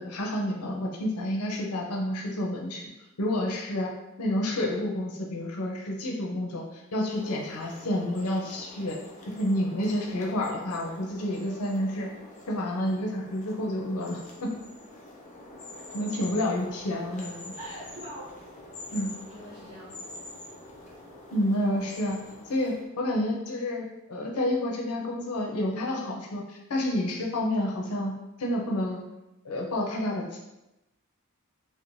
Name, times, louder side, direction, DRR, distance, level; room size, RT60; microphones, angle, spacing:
voice 1, 0.0-2.9 3.2-3.9 4.2-9.0 9.3-12.1 12.5-14.5 15.9-17.5 18.9-19.1 21.3-22.2 22.5-28.1 28.4-29.0 29.4-30.4, left 1 dB, 85° left, -1 dB, 0.6 m, -29 dB
sound 1, 7.1-22.8, left 2 dB, 35° left, 0.4 m, -46 dB
voice 2, 17.1-18.3 19.3-20.2, right 1 dB, 85° right, -5 dB, 1.0 m, -44 dB
3.1 x 2.0 x 2.6 m, 0.94 s
head